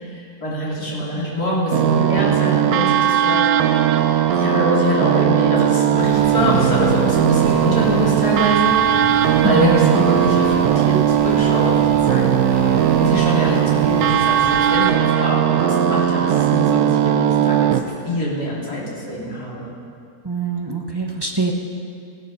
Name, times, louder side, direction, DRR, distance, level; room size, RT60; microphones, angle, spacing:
voice 1, 0.0-8.8 9.2-19.7, equal, 80° left, -5 dB, 3.6 m, -24 dB
sound 1, 1.7-17.8, right 10 dB, 75° right, 1.1 m, -18 dB
Engine, 6.0-14.8, right 1 dB, 50° left, 5.4 m, -32 dB
voice 2, 20.3-21.5, right 3 dB, 20° right, 1 dB, 0.9 m, -23 dB
17.0 x 12.0 x 5.4 m, 2.4 s
omnidirectional pair, 1.6 m